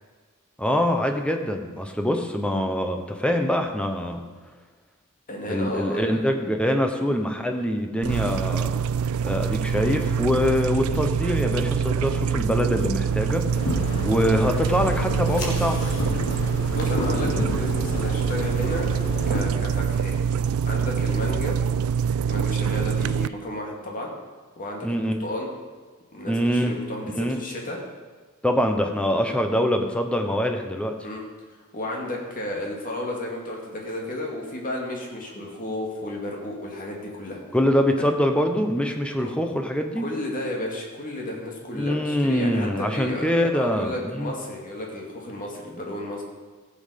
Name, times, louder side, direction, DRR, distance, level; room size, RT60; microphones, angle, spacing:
voice 1, 0.6-4.2 5.5-8.8 9.2-15.8 24.8-25.2 26.3-26.8 27.1-27.4 28.4-31.0 37.5-40.0 41.7-44.3, equal, 5° left, 4 dB, 0.9 m, -24 dB
voice 2, 5.3-6.3 13.8-14.0 16.7-18.9 19.3-21.6 22.3-24.1 24.6-25.5 26.1-27.8 31.0-31.2 31.7-37.4 38.0-38.1 39.2-39.3 40.0-46.2, left 1 dB, 40° left, -1 dB, 2.3 m, -33 dB
sound 1, 8.0-23.3, right 7 dB, 75° right, 0.3 m, -25 dB
sound 2, 13.5-19.4, left 2 dB, 90° left, 2.8 m, -30 dB
15.0 x 7.6 x 5.2 m, 1.4 s
head